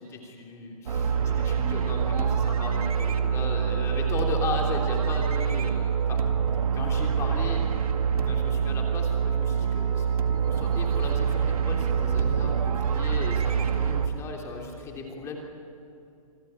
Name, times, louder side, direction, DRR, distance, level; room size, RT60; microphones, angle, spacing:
voice 1, 0.1-6.2 6.7-7.6 8.2-10.1 10.5-15.4, left 3 dB, 15° left, 1 dB, 3.2 m, -36 dB
sound 1, 0.9-14.1, right 7 dB, 75° right, 2.3 m, -25 dB
28.0 x 18.0 x 9.9 m, 2.7 s
hypercardioid pair, 160°, 19 cm